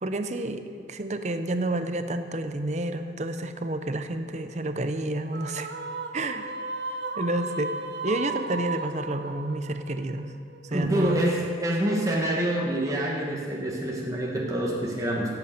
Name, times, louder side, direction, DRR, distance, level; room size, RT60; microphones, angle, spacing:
voice 1, 0.0-5.7 6.1-6.5 7.2-7.7 8.0-10.3 10.6-11.2, right 1 dB, 40° right, 9 dB, 0.8 m, -29 dB
sound 1, 5.3-10.7, right 3 dB, 70° right, 0.8 m, -35 dB
voice 2, 10.7-15.4, right 1 dB, 20° right, -3 dB, 1.4 m, -26 dB
16.5 x 8.4 x 6.6 m, 2.3 s
head